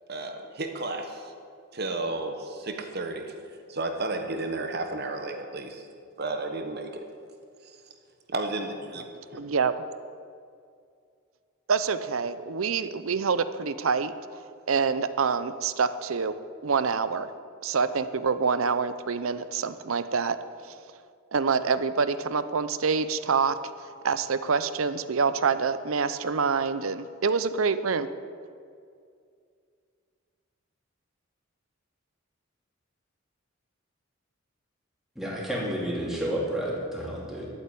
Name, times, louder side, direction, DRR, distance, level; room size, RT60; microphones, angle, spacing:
voice 1, 0.1-1.3 1.7-3.4 3.7-5.9 6.2-7.0 7.6-7.8 8.3-9.4, right 2 dB, 50° right, 5 dB, 1.2 m, -33 dB
voice 2, 9.4-9.7 11.7-14.1 14.7-16.3 16.6-17.3 17.6-20.4 21.3-23.6 24.0-28.1, right 5 dB, 85° right, 13 dB, 0.7 m, -26 dB
voice 3, 35.1-37.5, equal, ahead, -4 dB, 2.9 m, -30 dB
11.5 x 9.0 x 8.5 m, 2.3 s
head